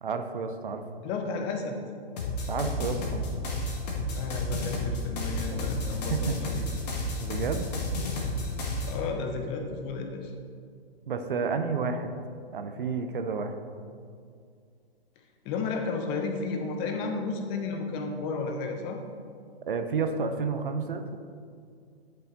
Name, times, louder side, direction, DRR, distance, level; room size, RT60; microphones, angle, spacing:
voice 1, 0.0-0.8 2.5-3.2 5.5-5.6 6.1-6.4 7.2-7.7 11.1-12.1 12.5-13.5 19.7-21.2, right 5 dB, 55° right, 7 dB, 0.8 m, -30 dB
voice 2, 1.0-1.8 4.1-6.7 6.9-7.0 8.8-10.3 15.4-19.0, left 4 dB, 15° left, 4 dB, 0.6 m, -33 dB
sound 1, 2.2-8.9, left 2 dB, 40° left, 1.6 m, -31 dB
10.5 x 5.7 x 3.9 m, 2.2 s
figure-of-eight pair, 125°, 31 cm